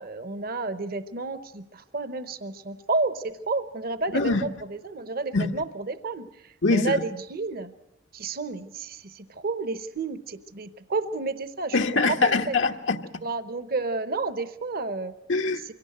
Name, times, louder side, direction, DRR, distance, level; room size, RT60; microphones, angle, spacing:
voice 1, 0.0-7.7 8.1-11.8 12.2-12.5 13.2-15.1, right 3 dB, 55° right, 0.8 m, -31 dB
voice 2, 4.1-4.5 5.3-5.5 6.6-7.0 11.7-13.0 15.3-15.6, left 3 dB, 90° left, 1.2 m, -23 dB
23.5 x 17.5 x 7.9 m
head